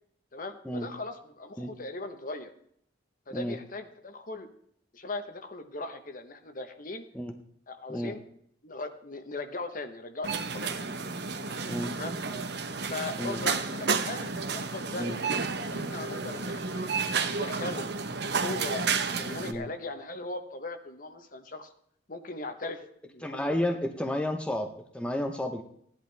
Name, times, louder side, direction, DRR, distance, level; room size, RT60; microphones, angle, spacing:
voice 1, 0.3-2.5 3.3-4.5 4.9-7.1 7.7-8.2 8.6-10.7 11.9-12.2 12.9-15.1 15.7-16.8 17.2-17.9 18.3-18.9 19.2-21.7 22.1-23.6, left 2 dB, 45° left, 7 dB, 1.1 m, -39 dB
sound 1, 10.2-19.5, right 4 dB, 60° right, 1.0 m, -31 dB
voice 2, 23.2-25.6, left 1 dB, 5° left, 4 dB, 0.8 m, -31 dB
16.5 x 10.5 x 3.4 m, 0.66 s
head